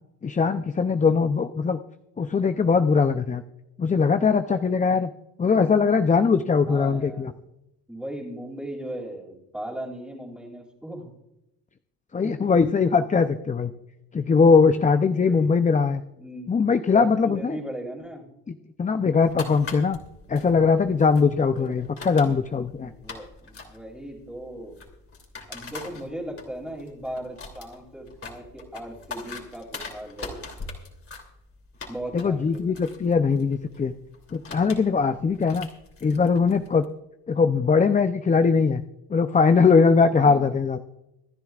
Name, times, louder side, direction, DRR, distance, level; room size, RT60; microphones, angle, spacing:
voice 1, 0.2-1.8 2.2-3.4 3.8-5.1 5.4-7.3 12.1-13.7 14.1-16.0 16.5-17.6 18.5-20.0 20.3-22.9 32.1-34.0 34.3-35.7 36.0-36.9 37.3-38.8 39.1-40.8, left 5 dB, 20° left, 9 dB, 0.6 m, -21 dB
voice 2, 6.6-7.4 7.9-11.1 12.2-12.5 15.0-15.6 16.2-16.5 16.9-18.3 21.5-22.1 22.8-24.8 25.5-30.4 31.9-32.8 40.1-40.5, right 1 dB, 5° right, -5 dB, 3.2 m, -37 dB
sound 1, 19.2-36.8, left 4 dB, 35° left, 2.9 m, -43 dB
26.0 x 10.5 x 2.4 m, 0.88 s
cardioid pair, 100°, 36 cm